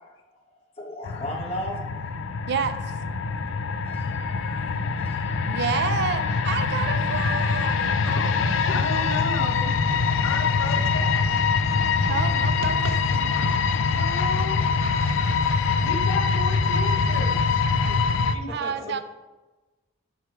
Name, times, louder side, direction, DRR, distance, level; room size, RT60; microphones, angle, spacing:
voice 1, 0.5-2.1 3.9-5.7 6.2-6.8 14.8-15.3 18.5-19.0, left 1 dB, 30° left, 0 dB, 1.1 m, -38 dB
sound 1, 1.0-18.3, left 5 dB, 65° left, 0.4 m, -24 dB
voice 2, 5.5-9.1 12.0-13.3 18.5-19.0, right 6 dB, 55° right, 11 dB, 0.5 m, -30 dB
voice 3, 8.1-8.4 8.7-9.8 10.2-11.2 12.8-14.6 15.8-18.0 18.3-19.0, left 3 dB, 90° left, 6 dB, 0.8 m, -34 dB
6.7 x 4.7 x 4.8 m, 1.1 s
head